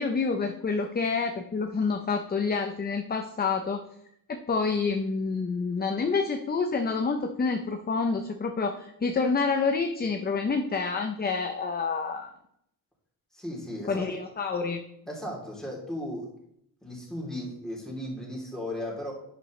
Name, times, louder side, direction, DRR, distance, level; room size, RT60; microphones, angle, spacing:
voice 1, 0.0-3.8 4.3-12.3 13.9-14.8, left 4 dB, 25° left, 5 dB, 0.6 m, -28 dB
voice 2, 13.4-14.0 15.1-16.3 16.8-19.1, left 1 dB, ahead, -3 dB, 3.1 m, -36 dB
10.5 x 9.8 x 3.2 m, 0.73 s
wide cardioid pair, 160°, 40 cm